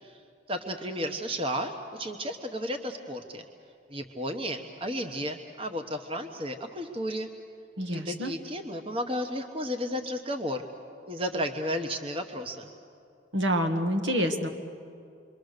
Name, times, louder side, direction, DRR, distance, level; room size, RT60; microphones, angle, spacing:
voice 1, 0.5-3.4 3.9-7.3 7.9-10.6 11.1-12.7, equal, 30° right, 5 dB, 1.0 m, -33 dB
voice 2, 7.8-8.3 13.3-14.5, equal, 80° right, 5 dB, 1.7 m, -27 dB
28.5 x 23.5 x 6.6 m, 2.5 s
head